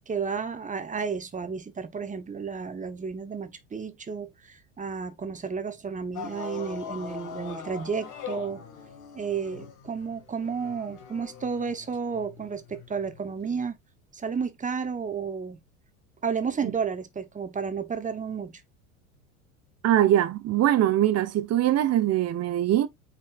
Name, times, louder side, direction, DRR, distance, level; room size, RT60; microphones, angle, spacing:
voice 1, 0.0-8.6 9.1-13.8 14.1-15.6 16.2-18.6, right 6 dB, 20° right, 1.2 m, -32 dB
sound 1, 6.1-13.3 14.4-14.5, left 7 dB, 45° left, 2.0 m, -42 dB
voice 2, 19.8-22.9, right 12 dB, 35° right, 1.1 m, -22 dB
8.6 x 4.3 x 2.5 m
hypercardioid pair, 90°, 41 cm